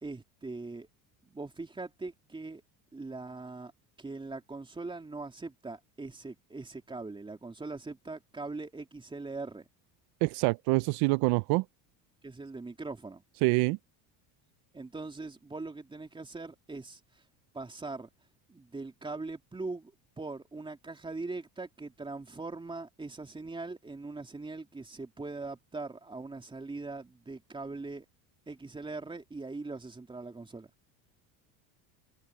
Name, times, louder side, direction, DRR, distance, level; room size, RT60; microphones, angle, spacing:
voice 1, 0.0-0.9 1.2-2.6 2.9-3.7 4.0-9.6 12.2-13.2 14.7-17.2 17.5-18.1 18.5-28.1 28.5-30.7, right 3 dB, 10° right, 3.2 m, -41 dB
voice 2, 10.2-11.6 13.4-13.8, right 25 dB, 65° right, 0.5 m, -26 dB
cardioid pair, 130°, 42 cm